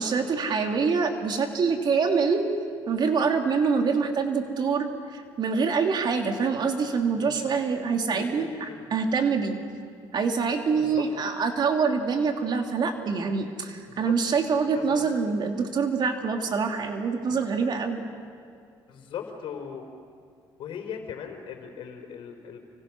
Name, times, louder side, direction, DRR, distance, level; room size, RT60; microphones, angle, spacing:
voice 1, 0.0-2.5 2.9-9.6 10.1-18.1, right 5 dB, 50° right, 4 dB, 3.1 m, -25 dB
voice 2, 8.1-8.9 10.8-11.1 13.9-14.1 14.7-15.1 18.9-19.9 20.6-22.6, left 8 dB, 70° left, 4 dB, 4.5 m, -39 dB
30.0 x 25.5 x 6.3 m, 2.3 s
cardioid pair, 85°, 9 cm